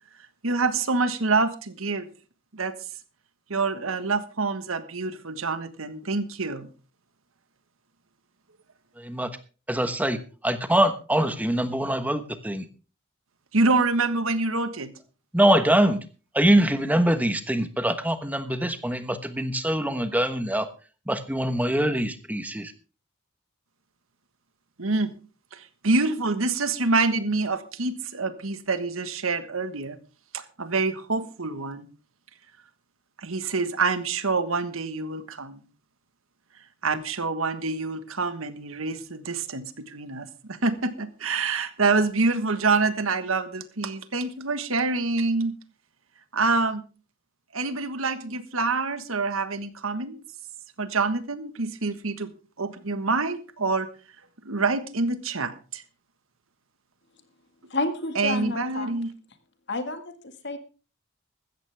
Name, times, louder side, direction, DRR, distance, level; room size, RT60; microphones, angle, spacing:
voice 1, 0.4-2.1 2.5-2.7 3.5-6.7 13.5-14.9 24.8-25.1 25.5-30.0 30.3-31.9 33.2-35.6 36.8-45.5 46.3-46.8 47.5-50.2 50.8-52.3 52.6-53.9 54.4-55.8 58.1-59.1, right 3 dB, 80° right, 11 dB, 1.4 m, -26 dB
voice 2, 9.0-9.3 9.7-12.7 15.3-16.0 16.3-20.7 21.1-22.7, right 1 dB, 10° right, 10 dB, 1.1 m, -23 dB
voice 3, 57.7-58.9 59.7-60.6, left 2 dB, 55° left, 8 dB, 1.9 m, -30 dB
15.5 x 13.5 x 3.5 m, 0.35 s
head